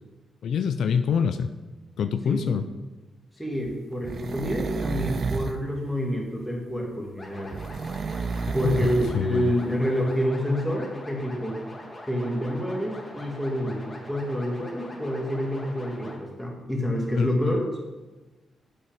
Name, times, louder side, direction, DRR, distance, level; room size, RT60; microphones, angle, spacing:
voice 1, 0.4-1.5 2.0-2.7 8.5-8.9 9.1-9.6 17.1-17.7, left 7 dB, 75° left, 9 dB, 0.4 m, -26 dB
voice 2, 2.3-2.6 3.4-7.5 8.5-11.6 12.1-17.6, equal, 5° left, -1 dB, 2.2 m, -28 dB
sound 1, 3.7-5.6 7.5-9.2 9.5-9.6, right 5 dB, 50° right, 0.4 m, -31 dB
sound 2, 7.2-16.2, left 1 dB, 30° left, 1.8 m, -43 dB
8.3 x 5.5 x 5.3 m, 1.2 s
cardioid pair, 80°, 0 cm